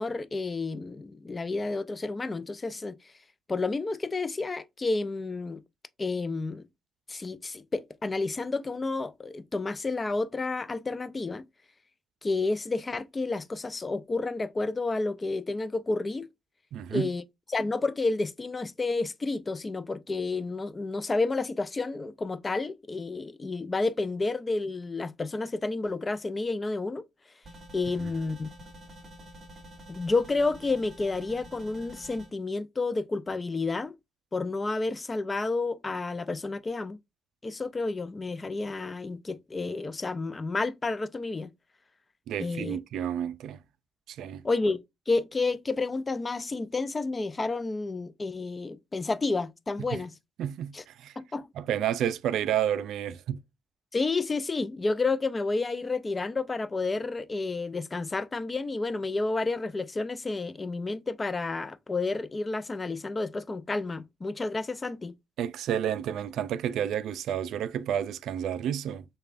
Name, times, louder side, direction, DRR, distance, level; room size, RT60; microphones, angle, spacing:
voice 1, 0.0-3.0 3.5-5.6 6.0-6.6 7.1-11.4 12.2-16.3 16.9-17.2 17.5-27.1 27.7-28.5 29.9-33.9 34.3-37.0 37.4-41.5 42.4-42.8 44.4-50.1 50.7-50.8 51.2-51.5 53.9-65.1, left 3 dB, 25° left, 0.4 m, -30 dB
voice 2, 16.7-17.1 42.3-43.6 44.1-44.4 49.9-50.0 50.4-51.1 51.6-53.4 65.4-69.0, right 10 dB, 80° right, 0.3 m, -30 dB
sound 1, 27.4-32.3, equal, 35° right, 2.9 m, -48 dB
6.6 x 2.3 x 2.5 m
cardioid pair, 90°, 0 cm